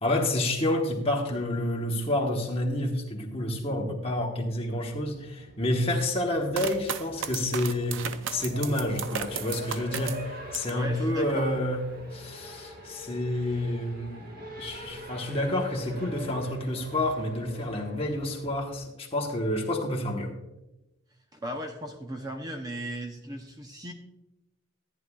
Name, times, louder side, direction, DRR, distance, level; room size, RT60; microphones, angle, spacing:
voice 1, 0.0-8.0 8.3-11.8 12.1-20.3, left 1 dB, 30° left, 1 dB, 1.1 m, -29 dB
Race car auto racing, 4.7-18.8, equal, 45° right, 1.3 m, -44 dB
sound 1, 6.5-10.8 11.3-11.9, right 7 dB, 65° right, 0.5 m, -35 dB
voice 2, 10.7-11.5 21.3-23.9, right 1 dB, 20° right, 3 dB, 0.6 m, -37 dB
14.0 x 9.7 x 2.3 m, 0.98 s
head